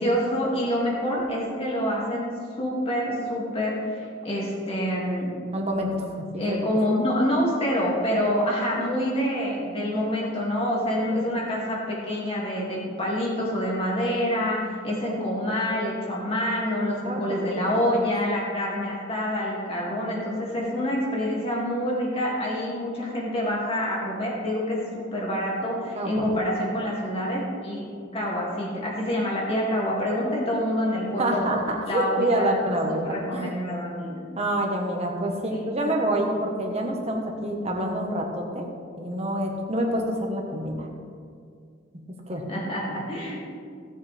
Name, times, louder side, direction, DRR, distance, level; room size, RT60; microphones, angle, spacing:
voice 1, 0.0-5.3 6.4-31.5 31.9-34.3 35.5-35.6 36.0-36.1 42.5-43.5, equal, 30° left, -5 dB, 2.6 m, -27 dB
voice 2, 5.5-5.9 6.3-6.6 17.0-17.6 25.9-26.2 31.2-33.1 33.3-33.5 34.4-38.7 39.0-40.9 42.3-42.4, right 1 dB, 30° right, 1 dB, 1.5 m, -27 dB
17.0 x 7.3 x 3.6 m, 2.2 s
head